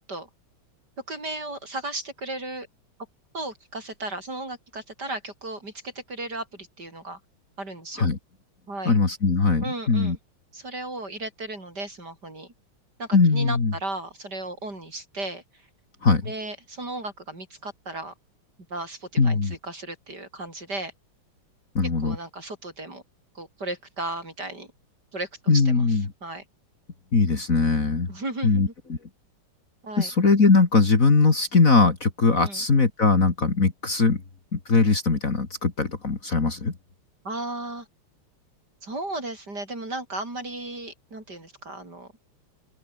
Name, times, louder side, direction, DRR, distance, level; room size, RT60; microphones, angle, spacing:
voice 1, 1.1-2.7 3.3-7.2 7.6-8.1 8.7-8.9 9.6-10.2 10.5-12.5 13.0-15.6 16.2-18.1 18.7-20.9 22.0-23.0 23.3-24.7 25.1-26.4 28.1-28.7 29.8-30.1 32.4-32.6 37.2-37.9 38.8-42.1, right 2 dB, 50° right, 7.8 m, -35 dB
voice 2, 8.8-10.2 13.1-13.7 16.0-16.3 19.2-19.6 21.7-22.2 25.5-26.0 27.1-28.1 28.4-29.0 30.0-34.2 34.5-36.7, left 4 dB, 40° left, 2.8 m, -20 dB
open air
omnidirectional pair, 2.4 m